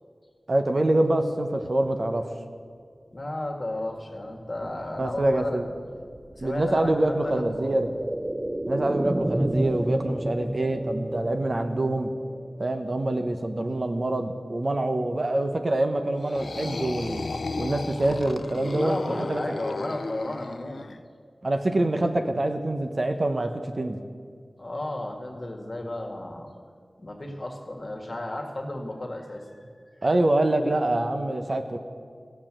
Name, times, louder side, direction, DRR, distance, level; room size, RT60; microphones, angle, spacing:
voice 1, 0.5-2.3 5.0-5.7 6.4-7.9 8.7-12.1 12.6-17.2 17.6-19.4 21.4-24.0 30.0-31.8, right 1 dB, 50° right, 6 dB, 1.0 m, -25 dB
voice 2, 3.1-5.7 6.4-7.8 18.6-20.9 24.6-26.5 27.0-29.6, left 1 dB, 45° left, 2 dB, 1.8 m, -33 dB
sound 1, 4.5-14.3 14.6-14.7, right 1 dB, 20° right, 0.5 m, -33 dB
sound 2, 16.2-21.0, left 3 dB, 85° left, 0.4 m, -34 dB
15.5 x 7.3 x 7.4 m, 2.1 s
wide cardioid pair, 55°, 0 cm